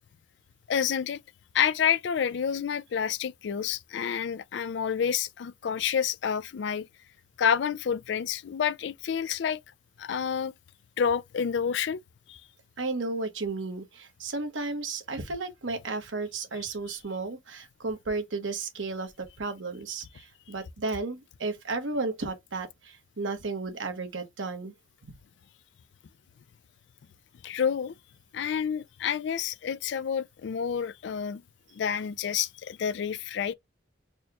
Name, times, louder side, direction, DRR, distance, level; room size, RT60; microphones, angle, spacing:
voice 1, 0.7-1.2 1.5-6.9 7.4-9.6 10.0-10.5 11.0-12.0 12.3-12.4 27.4-27.9 28.3-31.4 31.8-33.5, left 7 dB, 65° left, 0.3 m, -29 dB
voice 2, 12.8-24.7, right 3 dB, 90° right, 1.1 m, -33 dB
4.2 x 2.3 x 2.9 m
head